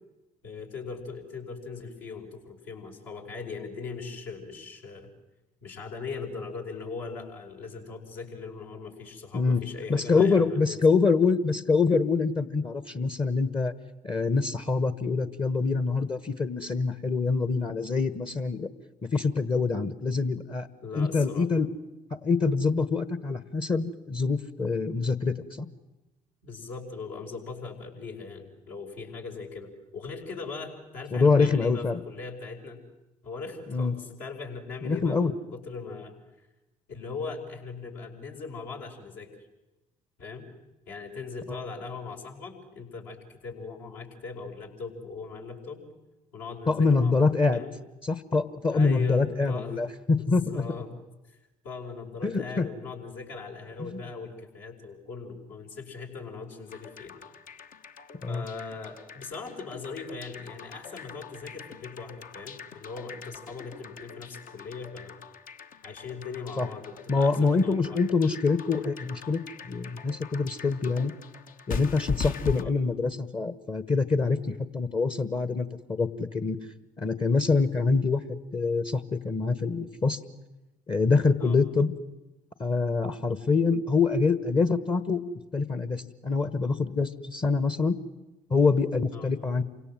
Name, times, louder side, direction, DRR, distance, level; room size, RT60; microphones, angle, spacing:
voice 1, 0.4-5.1 5.6-10.8 20.8-21.5 26.4-32.8 33.2-36.5 36.9-39.3 40.2-40.5 40.9-45.9 46.3-47.7 48.7-49.8 50.2-50.9 51.3-51.4 51.6-57.2 58.3-65.1 65.8-68.0 72.5-72.7 81.4-81.6 89.1-89.3, left 4 dB, 65° left, -1 dB, 5.4 m, -39 dB
voice 2, 9.9-13.7 14.0-18.7 19.1-20.7 20.9-21.7 22.2-25.7 31.1-32.0 33.7-33.9 34.8-35.3 46.7-47.6 48.0-50.6 52.2-52.7 53.9-54.0 58.2-58.4 66.6-66.7 67.1-69.4 69.6-71.1 71.7-76.6 77.0-80.2 80.9-81.9 82.6-85.2 85.5-88.0 88.5-89.6, left 4 dB, 25° left, 13 dB, 1.3 m, -25 dB
sound 1, 56.7-72.6, left 5 dB, 50° left, 1.2 m, -41 dB
28.5 x 25.5 x 7.6 m, 1.0 s
figure-of-eight pair, 50°, 19 cm